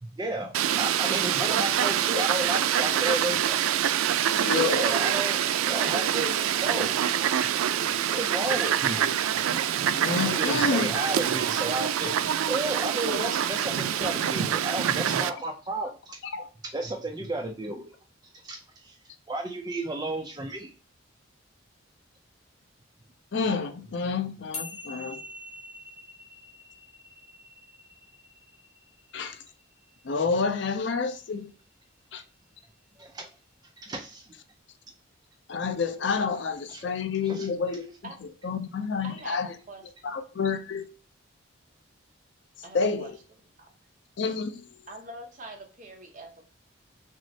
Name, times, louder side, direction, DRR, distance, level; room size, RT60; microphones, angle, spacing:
voice 1, 0.0-3.6 4.5-6.3 6.6-7.0 7.4-7.5 7.8-9.0 9.3-9.4 10.2-12.1 12.5-16.2 16.7-17.9 18.4-19.0 19.3-20.7 33.0-33.3 33.8-34.3 36.7-36.8 37.3-37.5, right 1 dB, 20° right, 0.4 m, -33 dB
Fowl, 0.5-15.3, right 10 dB, 90° right, 0.3 m, -25 dB
voice 2, 4.3-4.9 9.9-11.0 15.3-15.4 16.3-16.5 23.3-25.2 29.1-29.4 30.0-31.5 32.1-32.2 35.5-37.9 38.4-39.5 40.0-40.8 42.7-43.1 44.2-44.7, left 5 dB, 60° left, 0.4 m, -29 dB
sound 1, 24.5-31.1, left 2 dB, 35° left, 0.8 m, -45 dB
voice 3, 39.0-40.2 42.6-43.1 43.6-43.7 44.9-46.5, right 2 dB, 40° right, 0.8 m, -44 dB
6.1 x 2.0 x 2.6 m
head